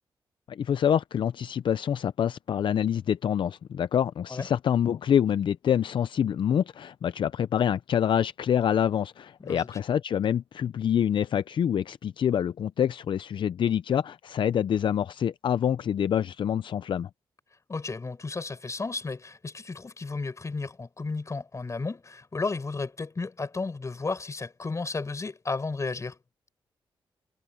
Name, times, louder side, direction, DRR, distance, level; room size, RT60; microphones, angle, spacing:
voice 1, 0.5-17.1, left 9 dB, 65° left, 0.5 m, -26 dB
voice 2, 17.7-26.2, left 3 dB, 35° left, 5.6 m, -33 dB
cardioid pair, 80°, 9 cm